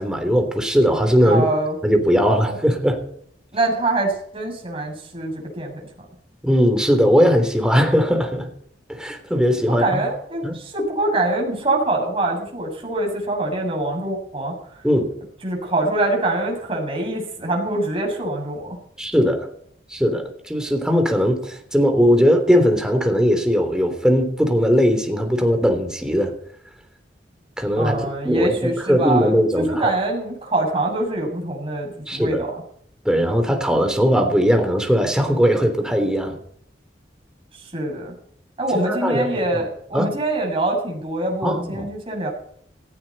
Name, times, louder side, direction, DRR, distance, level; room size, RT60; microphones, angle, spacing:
voice 1, 0.0-1.4 1.8-3.0 6.4-8.5 8.9-10.0 10.4-10.6 14.8-15.1 19.0-19.5 19.9-26.3 27.6-28.0 28.2-29.9 32.1-32.4 33.0-36.4 38.7-39.6 39.9-40.1 41.4-41.8, equal, 5° right, 5 dB, 3.3 m, -19 dB
voice 2, 1.2-1.8 2.4-2.6 3.5-5.9 9.7-14.5 15.4-18.8 27.8-32.5 37.5-38.1 38.6-42.3, right 2 dB, 30° right, 0 dB, 7.1 m, -24 dB
18.0 x 15.5 x 4.3 m, 0.64 s
head